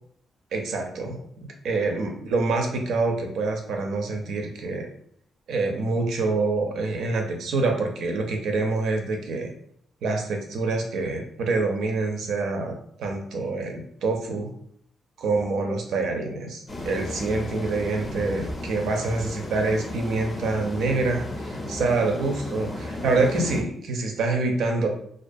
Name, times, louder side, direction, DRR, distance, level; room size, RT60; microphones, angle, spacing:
voice 1, 0.5-1.2 1.6-4.9 5.5-9.5 10.0-14.5 15.2-24.9, right 3 dB, 85° right, 3 dB, 0.5 m, -26 dB
sound 1, 16.7-23.6, left 1 dB, 30° left, 0.5 m, -34 dB
2.4 x 2.3 x 2.5 m, 0.67 s
cardioid pair, 125°, 0 cm